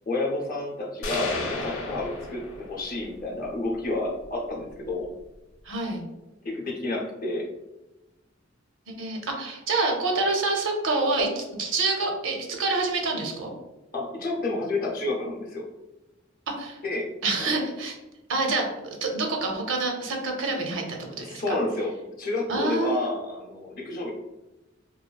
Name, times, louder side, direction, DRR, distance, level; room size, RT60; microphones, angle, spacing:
voice 1, 0.1-5.1 6.4-7.5 13.9-15.7 16.8-17.1 17.4-17.5 21.2-24.1, left 2 dB, 45° left, -1 dB, 0.6 m, -30 dB
sound 1, 1.0-3.0, left 2 dB, 90° left, 0.8 m, -32 dB
voice 2, 5.6-6.0 9.0-13.5 16.5-16.8 17.2-17.9 18.3-21.6 22.5-23.0, right 3 dB, 80° right, 2 dB, 0.6 m, -27 dB
3.0 x 2.3 x 2.2 m, 1.0 s
head